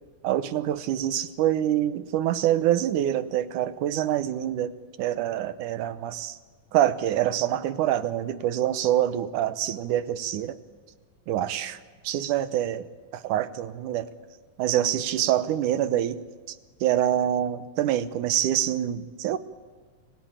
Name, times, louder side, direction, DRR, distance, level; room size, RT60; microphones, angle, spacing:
voice 1, 0.2-4.7 5.0-6.4 6.7-10.6 11.3-11.8 12.0-12.8 13.1-14.1 14.6-16.2 16.5-19.4, right 11 dB, 75° right, 12 dB, 2.4 m, -25 dB
28.5 x 18.0 x 8.9 m, 1.5 s
omnidirectional pair, 3.8 m